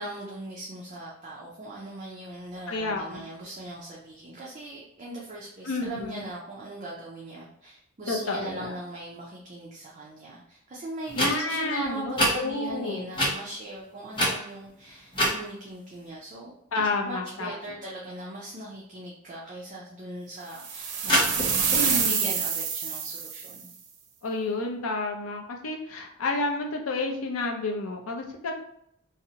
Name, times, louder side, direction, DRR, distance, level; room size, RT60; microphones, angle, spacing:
voice 1, 0.0-23.7, right 1 dB, 35° right, -4 dB, 0.4 m, -40 dB
voice 2, 2.7-3.2 5.6-6.2 8.1-8.7 11.1-13.1 16.7-17.8 21.7-22.3 24.2-28.5, left 3 dB, 65° left, 2 dB, 0.5 m, -30 dB
sound 1, 11.1-11.3 12.1-12.3 13.1-13.3 14.1-14.7 15.1-15.3 21.0-22.1, equal, 20° left, 0.6 m, -25 dB
sound 2, 20.6-23.6, right 6 dB, 90° right, 0.5 m, -27 dB
2.6 x 2.0 x 2.7 m, 0.74 s
head